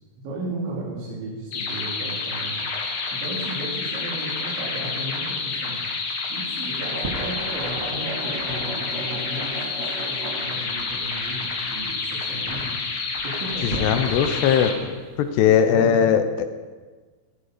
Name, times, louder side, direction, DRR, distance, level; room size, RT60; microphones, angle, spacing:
voice 1, 0.2-2.7 3.1-5.8 6.3-12.8 13.2-14.8 15.7-16.0, right 1 dB, 80° right, -6 dB, 5.2 m, -35 dB
sound 1, 1.5-14.7, left 4 dB, 55° left, 3.2 m, -29 dB
sound 2, 6.8-15.3, right 2 dB, 55° right, 0.8 m, -35 dB
voice 2, 13.6-14.9 15.2-16.5, left 8 dB, 75° left, 9 dB, 2.7 m, -19 dB
15.5 x 15.0 x 5.1 m, 1.4 s
omnidirectional pair, 5.3 m